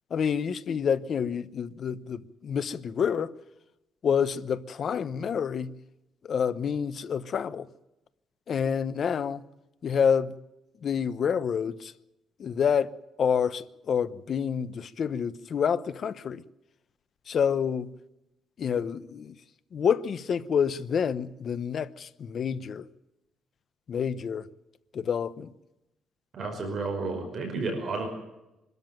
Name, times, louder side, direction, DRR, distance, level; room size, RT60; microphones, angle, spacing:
voice 1, 0.1-3.3 4.0-5.7 6.2-7.7 8.5-9.4 9.8-10.3 10.8-11.9 12.4-12.9 13.2-16.4 17.3-17.9 18.6-19.3 19.7-22.9 23.9-24.5 24.9-25.5, left 7 dB, 40° left, 0.9 m, -28 dB
voice 2, 26.3-28.1, right 3 dB, 40° right, 5.4 m, -31 dB
24.5 x 13.5 x 9.1 m
cardioid pair, 170°, 0 cm